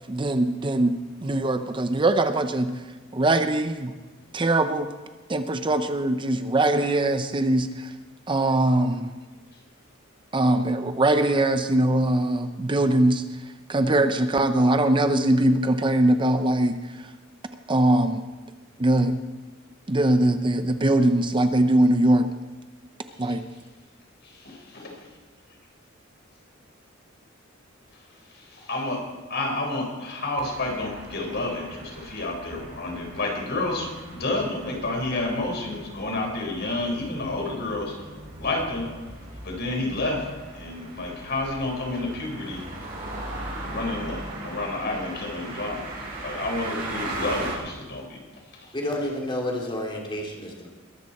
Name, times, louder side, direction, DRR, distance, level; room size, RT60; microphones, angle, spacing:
voice 1, 0.1-2.8 3.1-3.9 4.3-4.9 5.3-7.9 8.3-9.1 10.3-13.2 13.7-16.8 17.7-18.2 18.8-19.2 19.9-22.3 23.2-23.4, right 1 dB, 25° right, 9 dB, 0.6 m, -21 dB
voice 2, 24.2-24.9 28.3-29.0 29.3-37.9 38.4-38.9 39.4-40.3 40.5-42.6 43.7-48.2 48.5-48.7, left 2 dB, 55° left, 1 dB, 4.4 m, -30 dB
sound 1, 30.4-47.6, right 2 dB, 50° right, 5.2 m, -38 dB
voice 3, 48.7-50.7, left 1 dB, 25° left, -1 dB, 2.7 m, -30 dB
21.5 x 13.0 x 4.3 m, 1.3 s
head